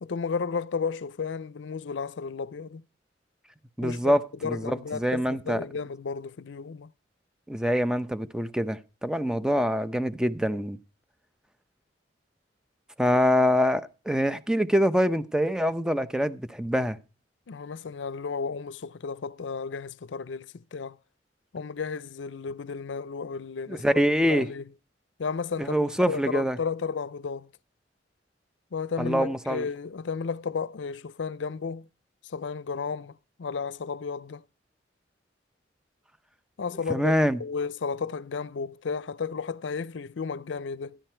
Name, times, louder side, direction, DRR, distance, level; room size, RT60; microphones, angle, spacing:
voice 1, 0.0-2.8 3.8-4.1 4.4-6.9 17.5-21.0 21.5-24.0 24.3-24.6 25.2-27.5 28.7-31.9 32.3-34.4 36.6-37.1 37.4-41.0, left 5 dB, 80° left, 0.5 m, -33 dB
voice 2, 3.8-5.6 7.5-10.8 13.0-17.0 23.7-24.5 25.6-26.6 29.0-29.7 36.9-37.4, equal, 5° right, 0.6 m, -25 dB
14.0 x 10.0 x 4.5 m
head